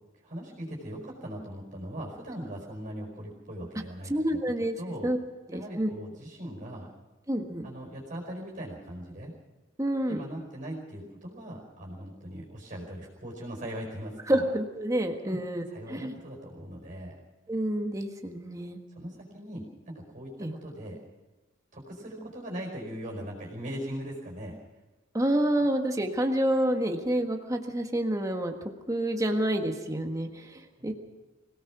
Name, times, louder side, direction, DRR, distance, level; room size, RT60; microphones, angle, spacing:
voice 1, 0.2-4.4 4.8-5.1 5.5-6.9 7.6-9.3 10.1-14.4 15.2-15.4 15.7-17.2 18.9-21.0 21.7-24.6 30.8-30.9, equal, 40° right, -1 dB, 4.9 m, -40 dB
voice 2, 4.1-4.7 5.0-5.2 5.5-5.9 7.3-7.7 9.8-10.2 14.3-16.1 17.5-18.8 20.4-20.5 25.1-28.5 28.9-30.9, right 1 dB, 15° right, 3 dB, 1.6 m, -28 dB
24.5 x 17.5 x 6.1 m, 1.2 s
head